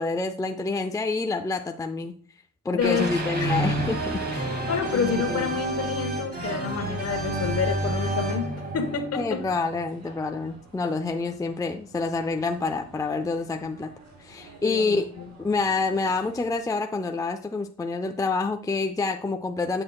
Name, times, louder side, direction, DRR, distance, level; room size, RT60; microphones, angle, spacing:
voice 1, 0.0-2.1 2.6-4.5 4.9-5.6 9.1-13.9 14.2-15.1 15.4-19.8, left 3 dB, 10° left, 6 dB, 0.5 m, -27 dB
voice 2, 2.7-3.7 4.7-9.5 14.6-15.3, left 6 dB, 55° left, 7 dB, 1.3 m, -29 dB
sound 1, 2.8-9.8, right 2 dB, 35° right, 2.2 m, -29 dB
sound 2, 3.6-16.6, right 2 dB, 60° right, 3.1 m, -51 dB
7.7 x 7.6 x 2.3 m, 0.44 s
cardioid pair, 90°, 30 cm